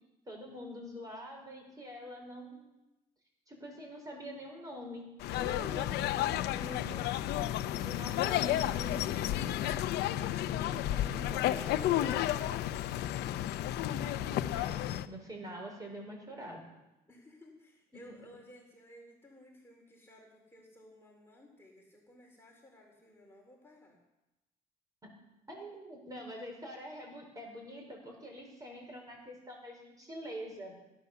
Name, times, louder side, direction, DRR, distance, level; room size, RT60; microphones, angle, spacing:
voice 1, 0.3-2.7 3.5-7.1 7.8-9.8 10.5-12.2 14.2-14.8 15.1-16.6 17.9-18.0 25.5-30.7, equal, 20° right, 0 dB, 5.2 m, -45 dB
sound 1, 5.2-15.1, left 13 dB, 80° left, 0.7 m, -32 dB
voice 2, 11.7-12.5 17.1-24.0, left 1 dB, 15° left, -1 dB, 3.9 m, -55 dB
16.5 x 9.6 x 7.0 m, 0.95 s
cardioid pair, 110°, 17 cm